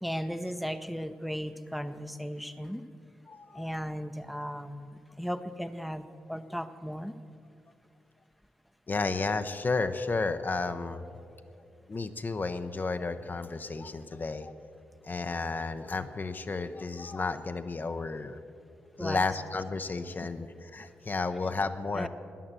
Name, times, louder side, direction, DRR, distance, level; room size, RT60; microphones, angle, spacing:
voice 1, 0.0-2.9 3.5-7.1 19.0-19.3 20.2-20.3 21.9-22.1, equal, ahead, 9 dB, 0.8 m, -36 dB
voice 2, 3.3-3.8 8.9-11.0 11.9-14.5 15.0-18.4 19.0-22.1, left 3 dB, 40° left, 8 dB, 0.7 m, -32 dB
13.0 x 10.0 x 7.5 m, 2.6 s
supercardioid pair, 45°, 5 cm